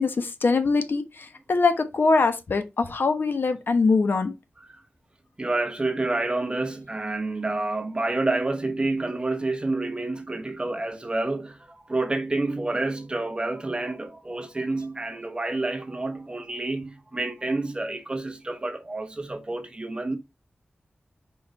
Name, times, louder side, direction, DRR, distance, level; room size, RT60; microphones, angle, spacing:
voice 1, 0.0-4.3, left 4 dB, 75° left, 1.1 m, -23 dB
voice 2, 5.4-20.2, right 2 dB, 25° right, 1.1 m, -29 dB
5.2 x 4.7 x 4.1 m
wide cardioid pair, 80°, 4 cm